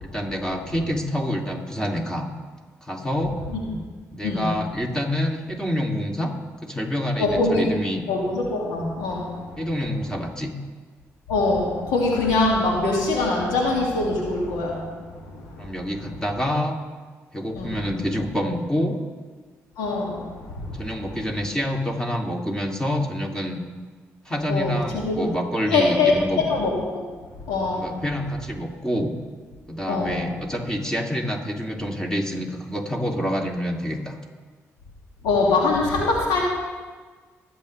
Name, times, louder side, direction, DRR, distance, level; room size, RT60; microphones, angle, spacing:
voice 1, 0.0-2.3 2.8-3.3 4.1-6.3 6.6-8.0 9.6-10.5 15.6-16.8 17.3-19.0 20.8-23.6 24.3-26.5 27.7-29.1 29.7-34.2, equal, 10° left, 1 dB, 2.5 m, -27 dB
voice 2, 7.2-7.6 8.1-9.2 11.3-11.7 11.9-14.7 17.6-17.7 19.8-20.1 24.5-24.8 25.0-25.2 25.7-26.1 26.5-26.7 27.5-27.8 29.9-30.1 35.3-36.4, left 3 dB, 85° left, -2 dB, 2.2 m, -22 dB
20.5 x 7.8 x 3.2 m, 1.4 s
hypercardioid pair, 45°, 7 cm